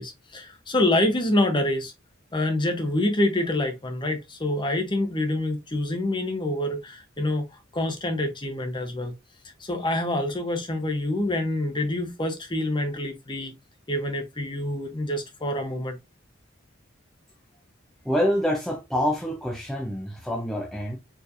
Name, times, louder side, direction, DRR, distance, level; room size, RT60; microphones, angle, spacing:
voice 1, 0.0-1.9 2.3-7.5 7.7-9.1 9.6-13.5 13.9-16.0, left 1 dB, 25° left, 0.9 m, -26 dB
voice 2, 18.0-21.0, equal, ahead, 0.5 m, -26 dB
4.6 x 3.2 x 2.6 m
head